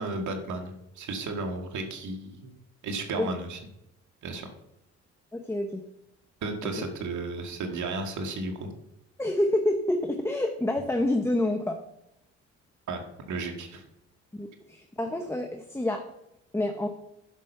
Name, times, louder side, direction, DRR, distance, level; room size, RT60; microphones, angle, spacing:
voice 1, 0.0-2.5 2.8-3.6 4.2-4.5 6.4-8.7 12.9-13.8, right 3 dB, 70° right, 4 dB, 2.0 m, -34 dB
voice 2, 5.3-5.8 6.6-6.7 9.2-11.8 14.3-16.0 16.5-16.9, left 1 dB, 10° left, 4 dB, 0.9 m, -28 dB
11.0 x 6.3 x 5.5 m, 0.83 s
cardioid pair, 90°, 30 cm